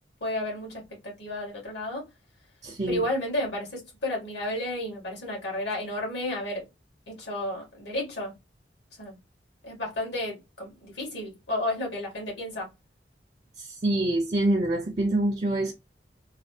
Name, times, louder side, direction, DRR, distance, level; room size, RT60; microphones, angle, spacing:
voice 1, 0.2-2.0 2.9-6.6 7.1-8.3 9.0-9.2 9.6-12.7, left 1 dB, 80° left, 1.7 m, -32 dB
voice 2, 2.6-3.0 13.6-15.7, right 1 dB, 40° right, 0.5 m, -26 dB
3.3 x 2.3 x 2.7 m
head